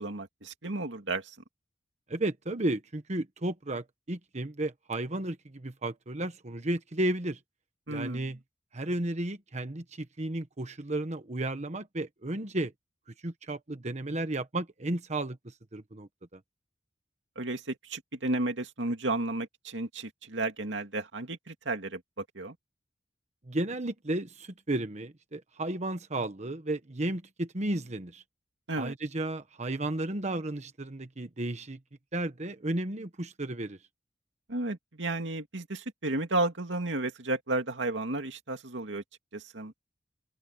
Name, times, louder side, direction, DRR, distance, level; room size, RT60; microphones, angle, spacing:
voice 1, 0.0-1.4 7.9-8.2 17.4-22.6 28.7-28.9 34.5-39.0 39.3-39.7, right 2 dB, 85° right, 2.4 m, -33 dB
voice 2, 2.1-7.4 7.9-8.4 8.7-12.7 13.2-16.1 23.5-28.2 28.8-31.8 32.1-33.8, right 1 dB, 40° right, 1.2 m, -33 dB
head